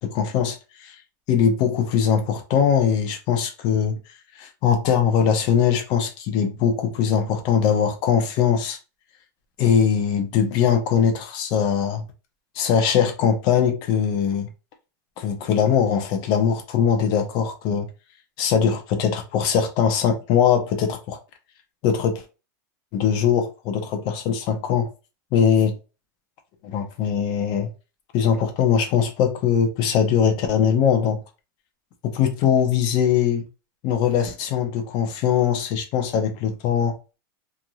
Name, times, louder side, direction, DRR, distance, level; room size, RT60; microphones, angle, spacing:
voice 1, 0.0-1.0 1.3-3.9 4.4-8.8 9.6-12.0 12.6-14.5 15.2-17.9 18.4-21.2 21.8-22.2 22.9-24.9 25.3-25.7 26.6-27.7 28.1-31.2 32.0-33.4 33.8-36.9, left 8 dB, 45° left, 0.7 m, -21 dB
3.0 x 2.5 x 2.3 m
supercardioid pair, 145°, 11 cm